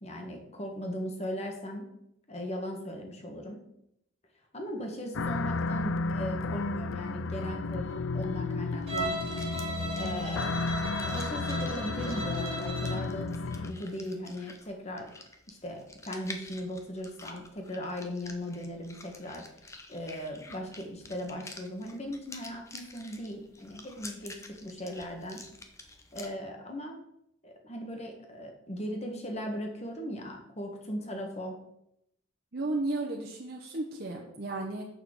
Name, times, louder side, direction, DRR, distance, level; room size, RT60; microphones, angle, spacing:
voice 1, 0.0-1.9 2.3-3.6 4.5-9.4 9.9-10.6 11.0-15.1 15.5-19.4 19.9-25.4 26.1-27.0 27.4-31.6, equal, 30° left, 2 dB, 1.5 m, -38 dB
sound 1, 5.1-13.7, left 3 dB, 80° left, 0.4 m, -33 dB
sound 2, 8.8-26.3, left 3 dB, 15° left, 0.8 m, -49 dB
Bowed string instrument, 8.9-13.1, right 2 dB, 30° right, 2.3 m, -37 dB
voice 2, 32.5-34.9, right 2 dB, 50° right, -2 dB, 1.0 m, -34 dB
6.7 x 5.6 x 6.4 m, 0.79 s
head